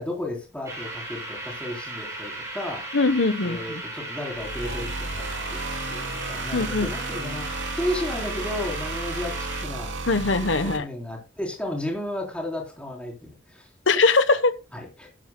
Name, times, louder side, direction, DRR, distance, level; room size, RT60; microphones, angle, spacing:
voice 1, 0.0-2.9 3.4-5.6 5.9-7.5 7.8-9.9 10.7-13.7 14.7-15.1, left 1 dB, 5° left, -1 dB, 3.8 m, -33 dB
sound 1, 0.6-9.6, right 2 dB, 15° right, 7.0 m, -36 dB
voice 2, 2.9-3.8 6.5-6.9 10.1-10.8 13.9-14.5, left 3 dB, 80° left, 12 dB, 1.0 m, -21 dB
sound 2, 4.3-10.8, right 3 dB, 85° right, 2.3 m, -33 dB
15.5 x 12.0 x 2.3 m, 0.28 s
head